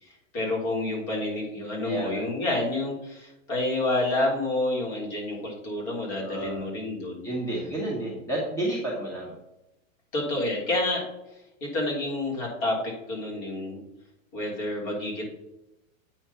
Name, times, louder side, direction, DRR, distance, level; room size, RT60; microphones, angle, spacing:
voice 1, 0.0-7.3 10.1-11.0 11.6-13.8 14.3-15.2, left 2 dB, 45° left, -2 dB, 3.4 m, -29 dB
voice 2, 1.8-2.2 6.2-6.6 7.2-9.3, right 1 dB, 5° left, -3 dB, 1.4 m, -31 dB
8.6 x 4.4 x 5.7 m, 0.89 s
supercardioid pair, 155°, 41 cm